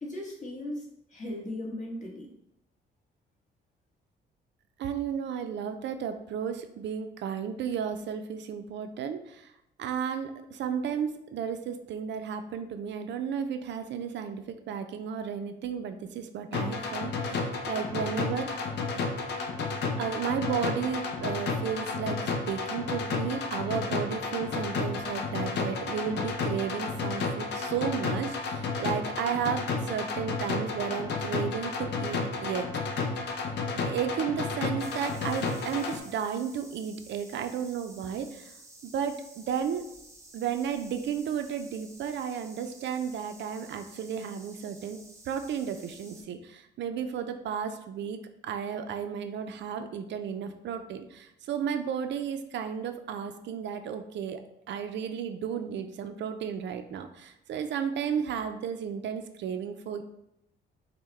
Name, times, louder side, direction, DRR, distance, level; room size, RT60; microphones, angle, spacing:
voice 1, 0.0-2.3, left 1 dB, 35° left, -2 dB, 1.3 m, -37 dB
voice 2, 4.8-9.5 9.8-18.7 20.0-33.2 33.8-38.5 38.8-39.9 40.3-45.0 45.3-54.4 54.7-60.0, right 7 dB, 65° right, 8 dB, 0.4 m, -33 dB
sound 1, 16.5-36.0, left 4 dB, 60° left, 0.6 m, -32 dB
sound 2, 34.8-46.2, right 2 dB, 15° right, 0.8 m, -52 dB
5.5 x 2.1 x 3.2 m, 0.82 s
cardioid pair, 90°, 20 cm